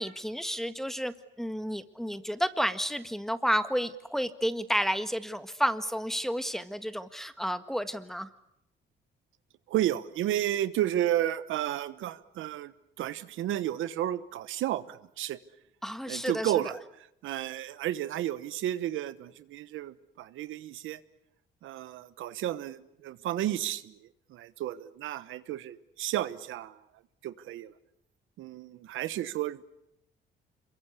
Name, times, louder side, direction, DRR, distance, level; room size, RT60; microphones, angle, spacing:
voice 1, 0.0-8.3 15.8-16.5, equal, ahead, 11 dB, 1.6 m, -31 dB
voice 2, 9.7-15.4 16.1-16.8 17.2-21.0 21.6-26.8 27.2-27.7 28.4-29.6, right 12 dB, 85° right, 14 dB, 1.2 m, -32 dB
26.5 x 23.0 x 8.3 m, 0.79 s
cardioid pair, 90°, 20 cm